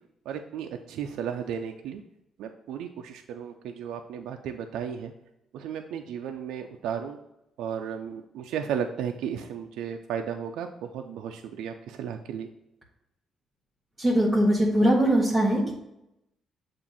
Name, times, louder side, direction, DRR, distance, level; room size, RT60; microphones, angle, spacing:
voice 1, 0.3-2.0 2.4-5.1 5.5-7.2 7.6-10.7 10.9-12.5, right 8 dB, 85° right, 5 dB, 0.3 m, -34 dB
voice 2, 14.0-15.7, right 1 dB, 10° right, -4 dB, 1.7 m, -21 dB
7.3 x 2.5 x 5.4 m, 0.87 s
cardioid pair, 90°, 0 cm